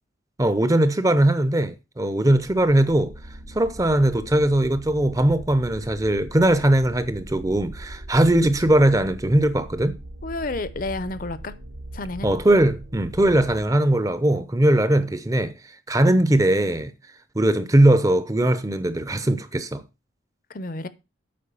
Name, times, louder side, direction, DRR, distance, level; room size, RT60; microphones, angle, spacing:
voice 1, 0.4-3.1 3.5-10.0 12.2-15.5 15.9-16.9 17.3-19.8, right 1 dB, 20° right, 0.6 m, -20 dB
sound 1, 2.3-13.7, right 1 dB, 75° right, 1.6 m, -40 dB
voice 2, 10.2-11.5 11.9-12.3 14.4-14.5 20.5-20.9, left 2 dB, 45° left, 0.7 m, -30 dB
8.7 x 4.8 x 6.9 m
head